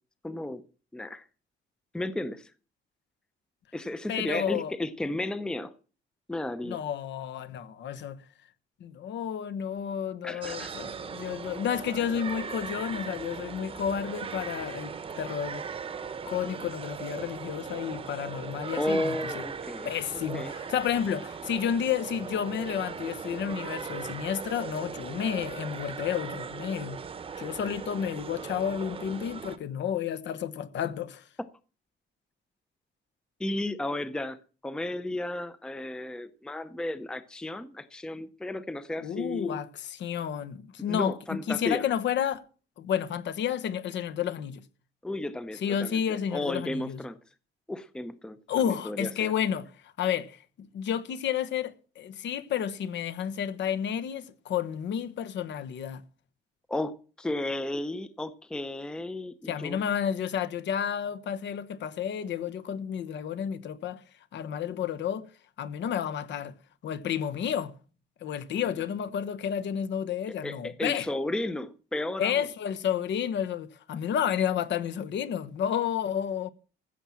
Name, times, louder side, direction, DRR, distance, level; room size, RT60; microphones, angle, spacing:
voice 1, 0.2-0.6 0.9-1.3 1.9-2.5 3.7-5.7 6.3-6.8 10.2-10.7 18.7-20.5 33.4-34.4 34.6-39.6 40.9-41.8 45.0-47.2 47.7-49.3 56.7-59.8 68.7-68.8 70.4-72.5, left 1 dB, 5° left, 0.6 m, -33 dB
voice 2, 4.1-4.7 6.6-8.2 8.8-15.6 16.2-19.4 19.8-27.0 27.4-31.2 39.0-42.4 42.8-44.6 45.6-47.0 48.5-56.0 59.5-64.0 64.3-65.3 65.6-66.5 66.8-67.7 68.2-71.1 72.2-76.5, left 8 dB, 65° left, 1.1 m, -31 dB
sound 1, 10.4-29.6, right 6 dB, 25° right, 0.9 m, -39 dB
15.0 x 7.2 x 7.4 m
cardioid pair, 180°, 20 cm